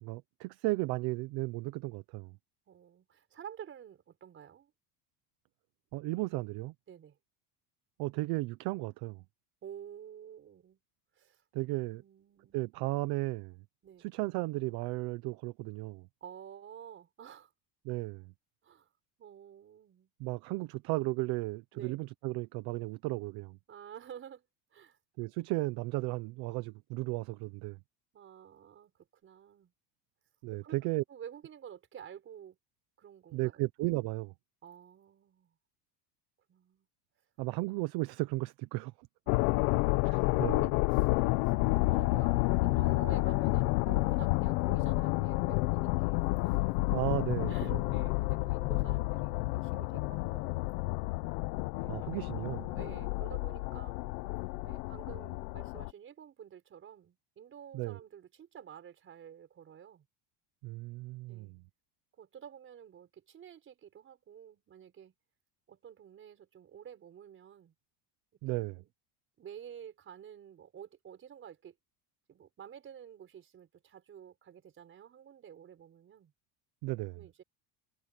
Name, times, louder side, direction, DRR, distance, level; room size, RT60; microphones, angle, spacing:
voice 1, 0.0-2.3 5.9-6.7 8.0-9.2 11.5-12.0 12.5-13.6 14.0-16.1 17.8-18.3 20.2-23.6 25.2-27.8 30.4-31.0 33.3-34.3 37.4-38.9 40.0-40.6 46.9-47.8 51.9-52.7 57.7-58.0 60.6-61.5 68.4-68.8 76.8-77.2, right 21 dB, 55° right, 0.8 m, -35 dB
voice 2, 2.7-4.7 6.9-7.2 9.6-10.8 11.1-11.4 11.9-12.6 13.8-14.1 16.2-17.5 18.6-18.9 19.2-20.1 21.7-22.0 23.7-24.4 24.7-25.0 28.1-29.7 30.5-30.8 31.1-32.6 33.0-33.6 34.6-35.6 36.5-36.9 39.3-41.4 41.8-42.4 42.6-46.8 47.5-50.8 51.8-52.2 52.7-54.0 54.6-60.1 61.3-61.5 62.1-65.1 65.7-67.7 68.5-68.9 69.4-71.8 72.3-76.3 77.1-77.4, right 9 dB, 25° right, 5.8 m, -51 dB
sound 1, 39.3-55.9, left 22 dB, 85° left, 1.1 m, -30 dB
cardioid pair, 175°, 46 cm